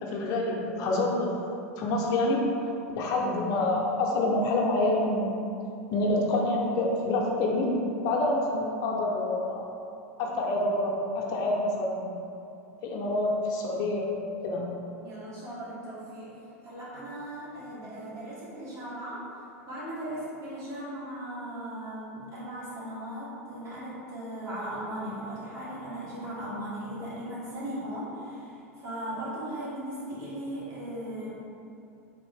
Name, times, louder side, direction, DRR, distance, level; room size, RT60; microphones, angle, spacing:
voice 1, 0.0-1.3 1.8-2.5 3.0-5.4 5.9-9.7 10.2-12.1 12.8-14.1 14.4-14.7, left 2 dB, 50° left, -2 dB, 0.6 m, -27 dB
voice 2, 15.0-16.3 16.6-19.2 19.6-31.4, right 1 dB, 40° right, -8 dB, 1.5 m, -38 dB
3.5 x 2.5 x 3.4 m, 2.7 s
hypercardioid pair, 100°, 8 cm